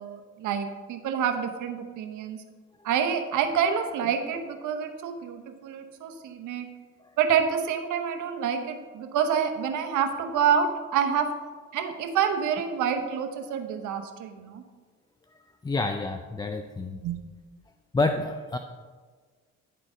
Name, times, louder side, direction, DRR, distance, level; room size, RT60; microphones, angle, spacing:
voice 1, 0.0-2.4 2.8-6.7 7.2-11.3 11.7-14.6 17.0-17.2, right 7 dB, 80° right, 6 dB, 0.9 m, -27 dB
voice 2, 15.6-17.0 17.9-18.6, left 3 dB, 15° left, 6 dB, 0.3 m, -29 dB
10.0 x 4.0 x 4.8 m, 1.4 s
cardioid pair, 90°, 30 cm